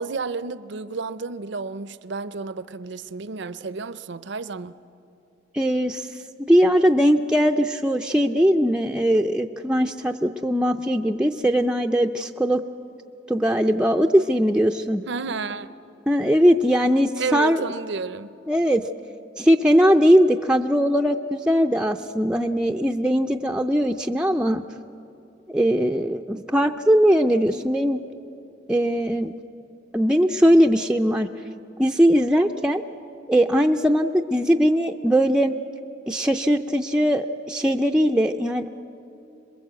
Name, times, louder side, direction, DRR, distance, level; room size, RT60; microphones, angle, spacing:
voice 1, 0.0-4.8 15.1-15.7 17.2-18.4, right 4 dB, 65° right, 0.7 m, -31 dB
voice 2, 5.5-6.1 6.5-12.6 13.3-15.0 16.1-17.6 18.5-18.8 19.4-24.6 25.5-28.0 28.7-29.3 29.9-31.3 31.8-32.8 33.3-35.6 36.1-38.8, equal, 5° right, 0.5 m, -20 dB
27.0 x 21.5 x 8.1 m
head